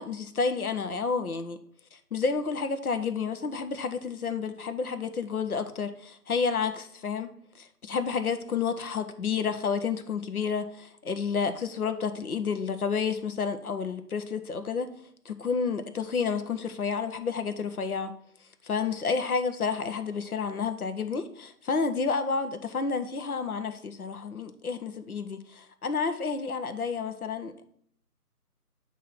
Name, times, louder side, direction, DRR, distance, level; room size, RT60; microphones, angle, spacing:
voice 1, 0.0-1.6 1.9-14.9 15.2-18.1 18.6-27.6, left 5 dB, 70° left, 8 dB, 0.7 m, -30 dB
7.9 x 2.8 x 5.8 m, 0.65 s
figure-of-eight pair, 160°, 46 cm